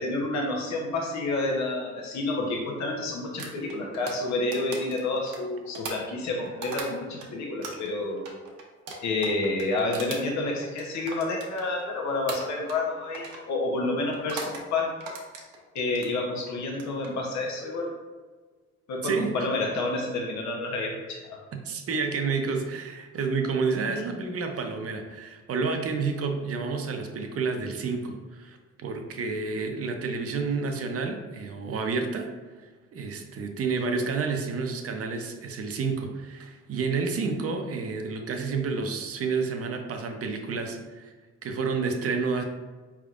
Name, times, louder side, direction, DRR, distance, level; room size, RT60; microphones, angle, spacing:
voice 1, 0.0-8.2 9.0-14.9 15.7-17.9 18.9-21.4 23.9-24.0, left 2 dB, 65° left, -1 dB, 0.9 m, -29 dB
sound 1, 3.4-7.3 7.6-11.9 12.3-12.9 13.1-13.5 14.1-14.6 15.0-16.1 16.7-17.1, right 3 dB, 80° right, 0.9 m, -39 dB
voice 2, 19.0-19.3 21.5-32.3 32.9-41.1 41.4-42.4, right 4 dB, 50° right, 4 dB, 0.7 m, -30 dB
4.5 x 3.5 x 2.5 m, 1.4 s
cardioid pair, 90°, 30 cm